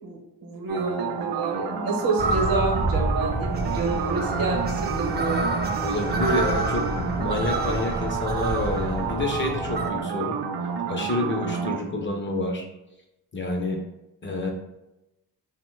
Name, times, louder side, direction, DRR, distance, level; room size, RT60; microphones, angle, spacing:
voice 1, 0.0-5.7, right 3 dB, 65° right, 1 dB, 0.8 m, -28 dB
sound 1, 0.7-11.8, right 6 dB, 85° right, 0.5 m, -30 dB
sound 2, 2.2-9.9, right 2 dB, 25° right, 0.4 m, -28 dB
voice 2, 5.8-10.4 10.9-12.6 13.3-13.8 14.2-14.5, left 2 dB, 30° left, 2 dB, 0.5 m, -28 dB
2.9 x 2.1 x 3.1 m, 0.92 s
cardioid pair, 80°, 38 cm